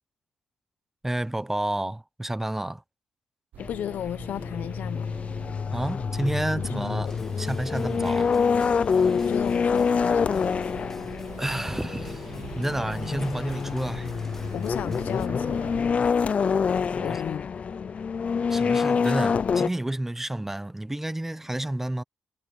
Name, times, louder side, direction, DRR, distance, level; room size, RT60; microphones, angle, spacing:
voice 1, 1.0-2.8 5.7-7.1 7.4-8.3 11.4-12.2 12.6-14.1 17.0-17.2 18.5-22.0, right 1 dB, 10° right, 1.0 m, -30 dB
sound 1, 3.5-15.8, right 12 dB, 80° right, 0.6 m, -44 dB
sound 2, 3.6-19.7, left 6 dB, 50° left, 0.5 m, -26 dB
voice 2, 3.7-5.2 6.6-7.1 9.1-10.5 14.5-15.7 17.0-17.5, left 10 dB, 75° left, 1.0 m, -34 dB
sound 3, 7.0-15.3, left 1 dB, 10° left, 2.8 m, -49 dB
cardioid pair, 70°, 3 cm